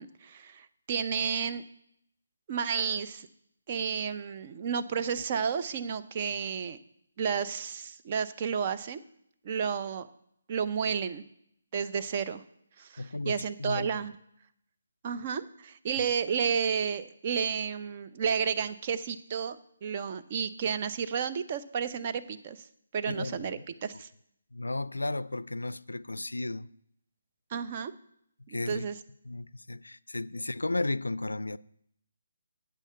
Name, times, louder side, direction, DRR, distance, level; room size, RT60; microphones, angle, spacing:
voice 1, 0.0-1.6 2.5-3.3 3.7-6.8 7.2-9.0 9.4-10.1 10.5-11.2 11.7-12.4 12.8-14.1 15.0-19.6 19.8-22.6 22.9-24.1 27.5-27.9 28.5-29.0, right 6 dB, 35° right, 0.6 m, -31 dB
voice 2, 13.0-14.0 23.1-23.6 24.5-26.7 28.5-28.9 29.3-31.6, left 2 dB, 85° left, 0.3 m, -34 dB
8.5 x 6.4 x 7.5 m
figure-of-eight pair, 145°, 0 cm